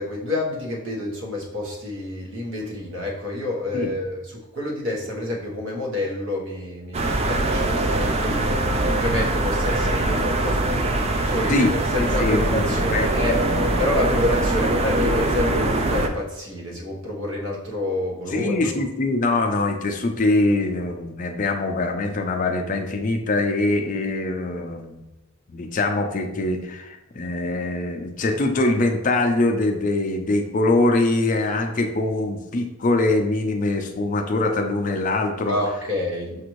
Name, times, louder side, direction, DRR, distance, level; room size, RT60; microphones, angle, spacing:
voice 1, 0.0-13.4 13.8-18.7 35.5-36.3, left 1 dB, 65° right, -2 dB, 1.1 m, -28 dB
sound 1, 6.9-16.1, right 2 dB, 30° right, 0.3 m, -22 dB
voice 2, 12.0-13.5 18.3-25.0 25.5-35.6, left 2 dB, 35° left, 5 dB, 0.4 m, -23 dB
6.4 x 2.6 x 3.0 m, 0.98 s
head